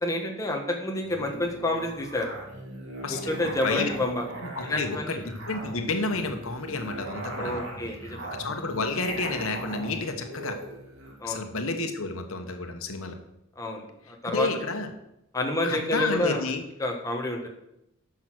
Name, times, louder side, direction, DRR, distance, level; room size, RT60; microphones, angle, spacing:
voice 1, 0.0-2.3 3.1-4.3 4.6-5.2 7.4-8.3 11.2-11.4 13.6-14.5 15.3-16.5 16.8-17.5, left 1 dB, 15° left, 1 dB, 1.4 m, -29 dB
Musical instrument, 1.0-11.2, right 1 dB, 65° right, 3.0 m, -39 dB
voice 2, 4.4-5.2 5.5-7.6 8.3-10.6 11.2-13.2 14.2-14.9 15.6-16.6, left 3 dB, 85° left, 5 dB, 1.2 m, -30 dB
10.5 x 6.3 x 6.2 m, 0.83 s
head